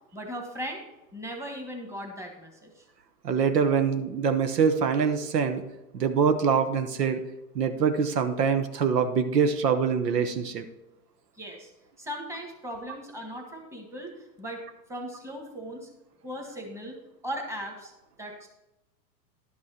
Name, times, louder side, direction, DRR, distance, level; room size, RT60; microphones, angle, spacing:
voice 1, 0.1-0.8 1.1-2.8 11.4-11.7 12.0-14.1 14.4-14.6 14.9-15.9 16.2-17.0 17.2-17.9 18.2-18.5, equal, 5° right, 1 dB, 1.5 m, -38 dB
voice 2, 3.2-5.6 5.9-7.2 7.5-10.7, right 6 dB, 85° right, 9 dB, 1.1 m, -24 dB
11.0 x 6.3 x 4.3 m, 0.91 s
hypercardioid pair, 125°, 47 cm